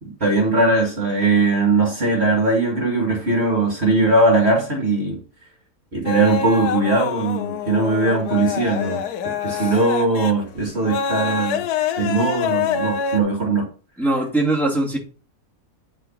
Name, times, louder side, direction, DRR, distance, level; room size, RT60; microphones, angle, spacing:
voice 1, 0.0-5.2 5.9-11.6 12.0-13.7, right 2 dB, 40° right, 0 dB, 2.0 m, -20 dB
sound 1, 6.1-13.2, left 7 dB, 75° left, 1.2 m, -26 dB
voice 2, 14.0-15.0, right 2 dB, ahead, -4 dB, 2.5 m, -21 dB
9.9 x 3.9 x 5.7 m, 0.38 s
omnidirectional pair, 1.7 m